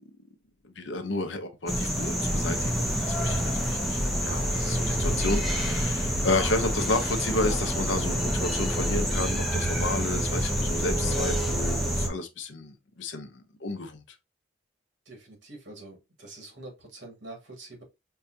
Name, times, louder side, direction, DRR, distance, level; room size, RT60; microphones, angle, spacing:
voice 1, 0.6-14.0, left 2 dB, 75° left, 0.7 m, -31 dB
sound 1, 1.7-12.1, equal, ahead, 0.6 m, -27 dB
voice 2, 15.1-17.8, right 2 dB, 70° right, 1.9 m, -45 dB
5.4 x 2.3 x 2.6 m
head